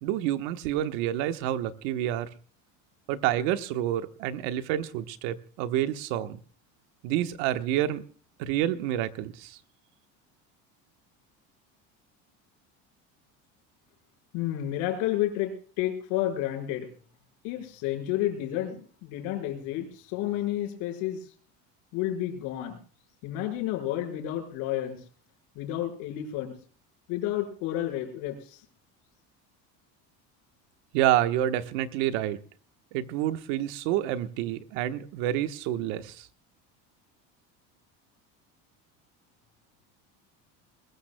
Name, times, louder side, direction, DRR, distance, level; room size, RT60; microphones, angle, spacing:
voice 1, 0.0-2.3 3.1-6.4 7.0-8.0 8.4-9.6 30.9-32.4 32.9-36.3, right 12 dB, 75° right, 9 dB, 1.2 m, -28 dB
voice 2, 14.3-16.9 17.4-21.3 21.9-22.8 23.2-25.0 25.5-26.5 27.1-28.6, left 12 dB, 60° left, 4 dB, 5.1 m, -31 dB
21.5 x 21.0 x 2.2 m, 0.43 s
cardioid pair, 180°, 34 cm